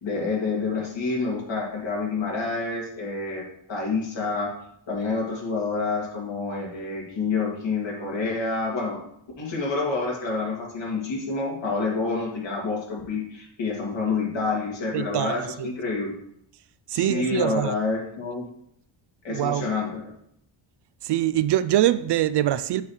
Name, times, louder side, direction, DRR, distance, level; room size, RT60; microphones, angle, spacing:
voice 1, 0.0-3.4 3.7-4.5 4.9-9.0 9.4-16.1 16.9-18.5 19.2-20.0, left 3 dB, 65° left, -2 dB, 2.5 m, -28 dB
voice 2, 14.9-15.7 16.9-17.7 19.3-19.7 21.0-22.8, right 13 dB, 60° right, 14 dB, 0.5 m, -24 dB
7.4 x 3.1 x 5.7 m, 0.71 s
cardioid pair, 80°, 48 cm